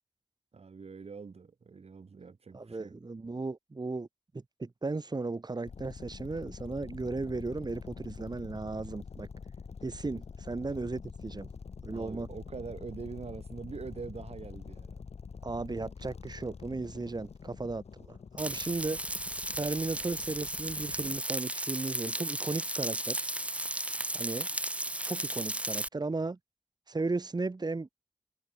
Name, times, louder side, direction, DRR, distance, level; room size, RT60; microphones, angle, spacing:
voice 1, 0.5-3.0 11.9-15.0, right 5 dB, 75° right, 4.2 m, -44 dB
voice 2, 2.5-4.1 4.3-9.3 9.8-11.5 11.8-12.3 15.4-19.0 19.5-23.3 24.1-24.5 25.0-26.4 26.9-27.9, right 3 dB, 40° right, 1.8 m, -35 dB
sound 1, 5.6-21.2, left 5 dB, 85° left, 2.1 m, -46 dB
Frying (food), 18.4-25.9, right 1 dB, 10° right, 0.7 m, -35 dB
wide cardioid pair, 70°, 11 cm